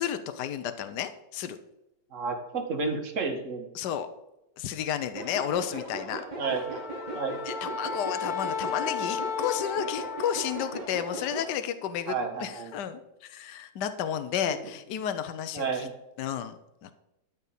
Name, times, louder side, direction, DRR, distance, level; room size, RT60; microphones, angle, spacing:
voice 1, 0.0-1.6 3.7-4.1 4.6-6.2 7.4-12.1 12.4-15.9 16.2-16.9, left 9 dB, 70° left, 9 dB, 1.4 m, -32 dB
voice 2, 2.1-3.7 6.4-6.8 7.1-7.4 12.1-12.7 15.5-15.9, right 4 dB, 45° right, 3 dB, 2.0 m, -31 dB
sound 1, 5.1-11.5, right 2 dB, 25° right, 2.2 m, -38 dB
Wind instrument woodwind instrument, 6.4-10.8, left 6 dB, 35° left, 0.8 m, -34 dB
13.0 x 5.3 x 6.9 m, 0.93 s
omnidirectional pair, 1.9 m